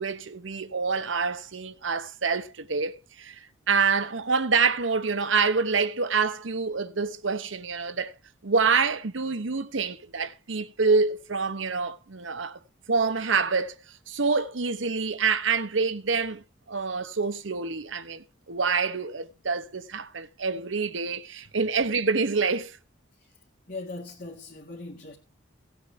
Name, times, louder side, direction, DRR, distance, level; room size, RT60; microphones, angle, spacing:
voice 1, 0.0-3.4 3.7-8.1 8.4-12.6 12.9-13.7 14.1-22.8, right 4 dB, 80° right, 1.0 m, -26 dB
voice 2, 23.1-25.2, left 3 dB, 45° left, 1.8 m, -41 dB
17.5 x 8.2 x 3.4 m
head